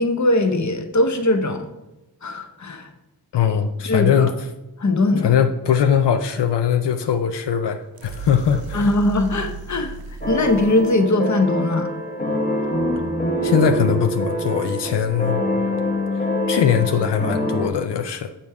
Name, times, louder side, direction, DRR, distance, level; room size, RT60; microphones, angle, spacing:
voice 1, 0.0-1.6 2.2-2.9 3.8-4.3 4.8-5.3 8.7-10.0 10.3-11.9, left 2 dB, 45° left, 7 dB, 0.9 m, -20 dB
voice 2, 3.3-4.3 5.2-8.9 13.4-15.4 16.5-18.3, left 8 dB, 85° left, 7 dB, 0.6 m, -20 dB
sound 1, 7.9-10.9, right 6 dB, 60° right, 0.6 m, -34 dB
sound 2, 10.2-17.7, left 1 dB, 20° left, 1.1 m, -25 dB
7.1 x 5.6 x 4.7 m, 0.99 s
wide cardioid pair, 70°, 40 cm